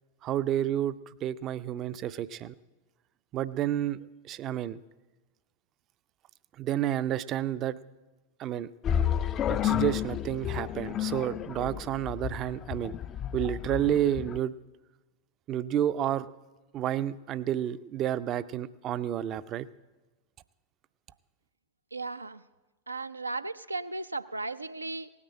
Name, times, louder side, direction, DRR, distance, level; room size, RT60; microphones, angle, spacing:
voice 1, 0.2-2.5 3.3-4.8 6.6-7.8 8.4-8.7 9.5-13.0 13.3-14.5 15.5-16.3 16.7-19.7, right 11 dB, 35° right, 16 dB, 0.5 m, -30 dB
sound 1, 8.8-14.4, left 10 dB, 30° left, 0.4 m, -31 dB
voice 2, 21.9-22.4 22.9-25.1, right 3 dB, 80° right, 12 dB, 0.5 m, -36 dB
17.5 x 9.6 x 7.6 m, 1.2 s
figure-of-eight pair, 90°, 0 cm